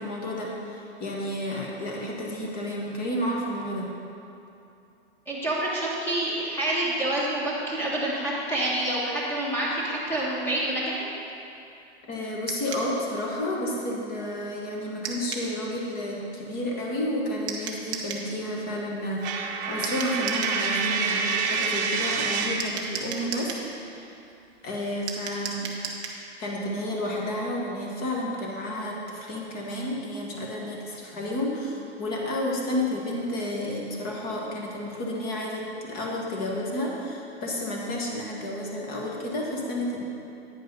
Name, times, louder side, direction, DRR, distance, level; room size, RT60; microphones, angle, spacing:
voice 1, 0.0-3.9 12.1-23.6 24.6-25.8 26.4-40.0, left 1 dB, 25° left, -2 dB, 1.4 m, -31 dB
voice 2, 5.3-11.0, right 1 dB, 5° left, -6 dB, 1.5 m, -27 dB
sound 1, 12.5-12.9 15.0-15.5 17.5-18.3 19.8-20.6 22.6-23.7 25.1-26.2, right 6 dB, 15° right, 0.4 m, -34 dB
Coin (dropping), 19.2-22.7, right 5 dB, 40° right, 0.8 m, -27 dB
9.4 x 5.3 x 5.4 m, 2.7 s
hypercardioid pair, 150°, 34 cm